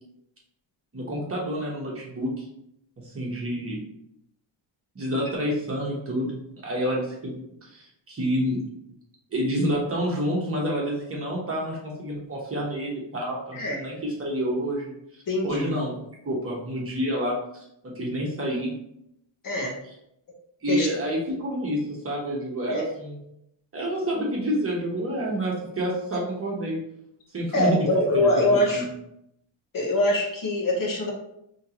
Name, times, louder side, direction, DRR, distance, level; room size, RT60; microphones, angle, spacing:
voice 1, 0.9-2.5 3.0-3.8 4.9-6.4 6.6-8.6 9.3-14.9 15.4-16.0 16.2-17.4 17.8-18.7 20.6-23.2 23.7-26.8 27.3-27.9 28.1-28.4 28.7-28.8, equal, 30° right, -3 dB, 1.1 m, -28 dB
voice 2, 15.3-15.7 19.4-19.7 20.7-20.9 22.7-22.8 27.5-28.8 29.7-31.1, left 1 dB, 45° left, -2 dB, 1.1 m, -23 dB
5.4 x 3.0 x 2.9 m, 0.79 s
wide cardioid pair, 160°, 46 cm